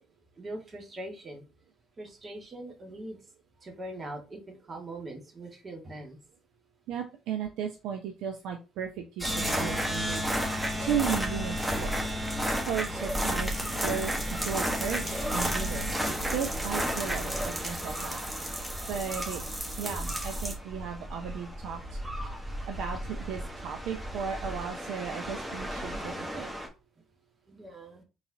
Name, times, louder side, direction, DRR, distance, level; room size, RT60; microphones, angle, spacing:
voice 1, 0.3-1.4 2.0-3.2 3.6-6.2 24.8-24.9 27.5-28.0, right 1 dB, 40° right, 3 dB, 1.4 m, -42 dB
voice 2, 6.9-14.1 14.4-18.2 18.5-19.4 19.8-22.0 22.7-26.5, right 8 dB, 70° right, 4 dB, 0.4 m, -36 dB
sound 1, 9.2-26.7, equal, 15° right, 1.2 m, -32 dB
3.8 x 3.1 x 2.7 m, 0.30 s
hypercardioid pair, 50°, 0 cm